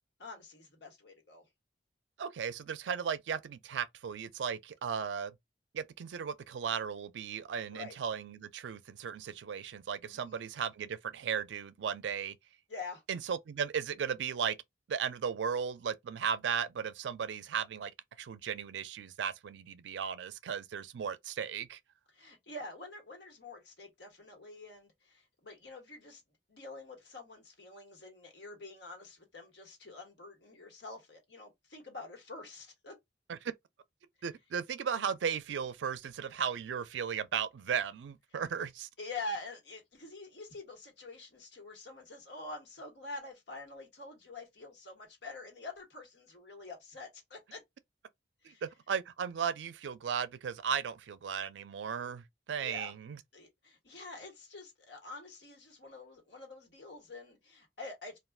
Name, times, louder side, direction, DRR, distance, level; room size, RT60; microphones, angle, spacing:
voice 1, 0.2-1.4 7.7-8.0 10.0-10.4 12.7-13.0 22.1-26.2 26.5-32.9 39.0-47.6 48.4-48.6 52.6-52.9 53.3-58.2, left 2 dB, 70° left, 1.3 m, -46 dB
voice 2, 2.2-5.4 5.7-12.4 13.1-14.6 14.9-17.9 18.2-21.8 33.3-33.5 34.2-38.9 48.4-53.2, right 7 dB, 85° right, 0.4 m, -36 dB
2.3 x 2.3 x 3.4 m
head